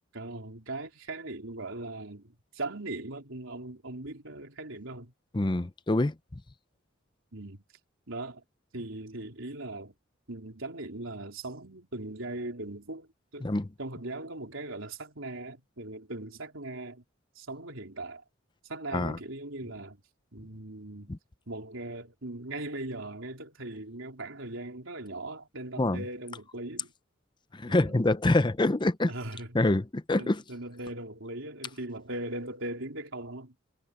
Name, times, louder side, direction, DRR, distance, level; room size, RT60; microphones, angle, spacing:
voice 1, 0.1-5.1 7.3-7.6 8.1-8.4 8.7-9.9 10.3-13.5 13.8-17.0 17.4-18.2 18.7-20.0 20.3-21.1 21.5-26.9 27.7-28.0 29.1-29.6 30.2-33.5, right 2 dB, 75° right, 3.8 m, -39 dB
voice 2, 5.3-6.1 13.4-13.7 18.9-19.2 21.1-21.2 25.8-26.0 27.5-29.1 29.5-30.4, left 2 dB, 25° left, 0.6 m, -26 dB
head